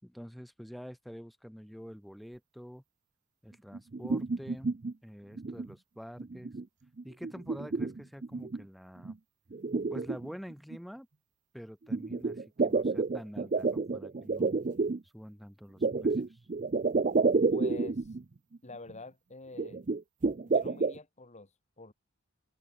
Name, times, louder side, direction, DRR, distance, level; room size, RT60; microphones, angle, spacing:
voice 1, 0.0-2.8 3.4-4.8 5.0-6.5 7.0-9.2 9.9-11.1 11.5-14.6 15.1-16.4, equal, ahead, 6.3 m, -47 dB
sound 1, 3.7-4.9 5.4-5.7 6.2-6.6 7.0-8.6 9.0-9.1 9.5-10.8 11.9-15.0 15.8-18.2 18.5-18.6 18.9-19.0 19.6-21.0, right 4 dB, 35° right, 0.5 m, -30 dB
voice 2, 17.5-18.2 18.6-19.8 20.5-21.9, left 2 dB, 30° left, 2.2 m, -46 dB
open air
head